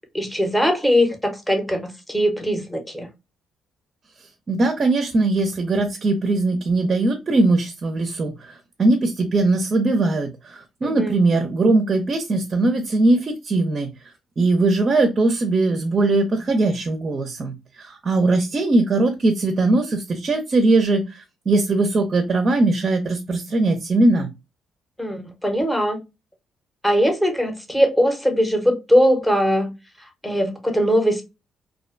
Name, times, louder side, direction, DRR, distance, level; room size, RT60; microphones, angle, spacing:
voice 1, 0.1-3.1 10.8-11.1 25.0-26.0 26.8-29.7 30.2-31.2, equal, 5° left, 0.7 m, -20 dB
voice 2, 4.5-13.9 14.4-24.3, right 2 dB, 40° right, 0.5 m, -20 dB
2.4 x 2.2 x 2.4 m
cardioid pair, 90°, 0 cm